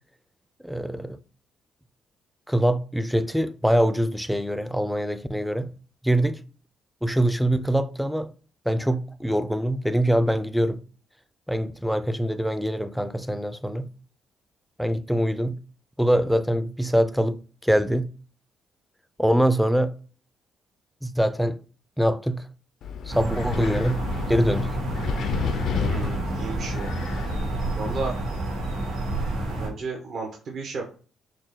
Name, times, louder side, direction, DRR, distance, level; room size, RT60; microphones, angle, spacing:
voice 1, 0.6-1.2 2.5-5.7 6.0-6.4 7.0-8.3 8.7-10.8 11.5-13.9 14.8-15.6 16.0-18.1 19.2-19.9 21.0-21.6 22.0-22.4 23.1-24.0 24.3-24.8, equal, ahead, 0.4 m, -24 dB
Wind, 22.8-28.1, left 6 dB, 70° left, 0.5 m, -32 dB
sound 1, 23.1-29.7, right 2 dB, 80° right, 2.3 m, -29 dB
voice 2, 25.7-26.9 27.7-28.1 29.6-30.9, right 4 dB, 65° right, 1.0 m, -33 dB
6.3 x 2.2 x 3.7 m
cardioid pair, 90°, 0 cm